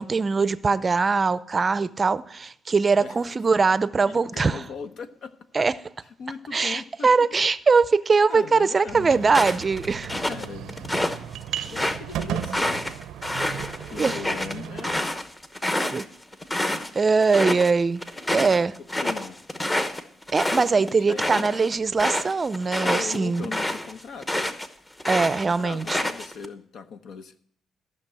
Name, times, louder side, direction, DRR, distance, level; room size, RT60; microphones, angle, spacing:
voice 1, 0.0-4.6 5.5-5.7 6.5-10.1 11.5-11.7 14.0-14.2 15.9-16.1 16.9-18.0 18.3-18.7 20.3-23.5 25.1-26.0, right 4 dB, 30° right, 0.5 m, -22 dB
voice 2, 3.0-3.3 4.0-5.6 6.2-7.1 8.3-9.2 10.1-12.9 13.5-15.0 19.0-19.4 20.6-21.8 22.7-24.5 25.2-27.4, left 5 dB, 70° left, 0.9 m, -39 dB
sound 1, 8.9-15.0, right 10 dB, 90° right, 0.6 m, -35 dB
sound 2, 9.3-11.2 11.6-16.9 17.2-17.7 18.0-24.7 25.0-26.5, left 1 dB, 15° left, 1.0 m, -28 dB
14.0 x 6.0 x 7.5 m
cardioid pair, 90°, 0 cm